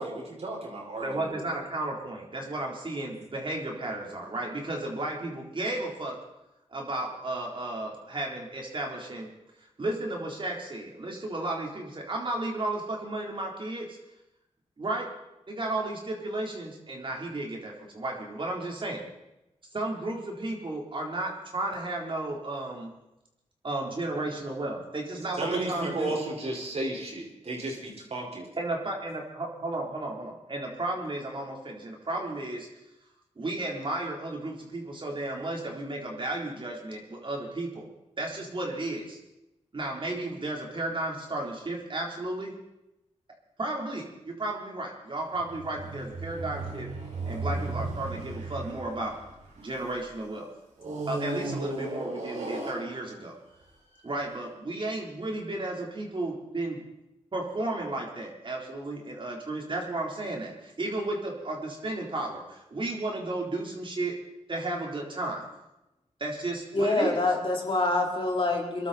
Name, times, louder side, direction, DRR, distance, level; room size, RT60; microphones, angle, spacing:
voice 1, 0.0-1.5 25.3-28.5, right 2 dB, 60° right, -1 dB, 5.1 m, -33 dB
voice 2, 1.0-6.2 6.7-9.3 9.8-13.9 14.8-15.1 15.5-19.0 19.7-22.9 23.6-26.2 28.6-32.7 33.4-37.9 38.2-39.2 39.7-42.5 43.6-46.9 47.3-49.1 49.6-50.5 51.1-53.3 54.0-56.8 57.3-64.1 64.5-65.5 66.2-67.2, right 2 dB, 45° right, -1 dB, 3.8 m, -33 dB
sound 1, 45.3-50.1 50.8-53.3 54.0-54.1, right 2 dB, 80° right, 4.4 m, -35 dB
voice 3, 66.7-68.9, left 2 dB, 45° left, -1 dB, 4.1 m, -26 dB
23.5 x 12.0 x 4.3 m, 0.92 s
cardioid pair, 75°, 12 cm